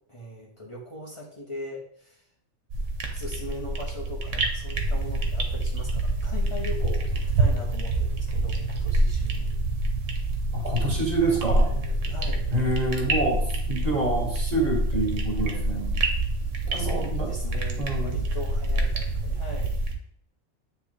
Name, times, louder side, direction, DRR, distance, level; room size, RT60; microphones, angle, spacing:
voice 1, 0.1-2.3 3.0-9.5 12.1-12.4 16.7-19.7, left 1 dB, 25° left, -5 dB, 1.3 m, -39 dB
sound 1, 2.7-19.9, right 2 dB, 85° right, 1.3 m, -27 dB
voice 2, 10.5-11.7 12.5-16.0 16.7-17.3 17.8-18.3, right 2 dB, 30° right, -4 dB, 2.2 m, -27 dB
9.3 x 3.5 x 3.2 m, 0.65 s
omnidirectional pair, 1.2 m